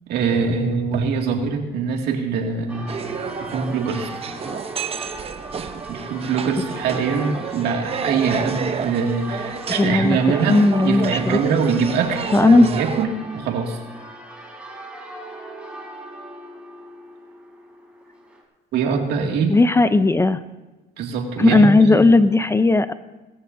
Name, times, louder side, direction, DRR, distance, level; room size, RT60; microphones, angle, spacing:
voice 1, 0.1-2.9 3.4-4.1 5.9-13.8 18.7-19.5 21.0-22.0, right 5 dB, 75° right, 2 dB, 2.1 m, -23 dB
Church bell, 2.7-18.4, right 1 dB, 5° right, 3.6 m, -38 dB
sound 1, 2.9-13.1, right 6 dB, 35° right, 0.8 m, -30 dB
voice 2, 9.8-10.2 10.5-11.4 12.3-12.7 19.5-20.4 21.4-22.9, left 3 dB, 15° left, 13 dB, 0.5 m, -15 dB
19.0 x 14.5 x 2.7 m, 1.2 s
cardioid pair, 110°, 17 cm